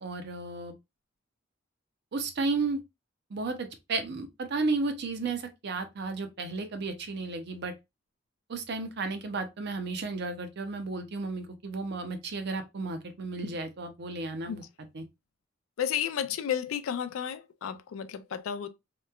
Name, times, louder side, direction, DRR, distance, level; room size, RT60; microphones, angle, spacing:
voice 1, 0.0-0.7 2.1-2.8 3.3-7.7 8.5-14.6 14.9-15.0, right 3 dB, 55° right, 0.5 m, -33 dB
voice 2, 15.8-18.7, left 9 dB, 85° left, 0.4 m, -32 dB
2.9 x 2.1 x 2.2 m
head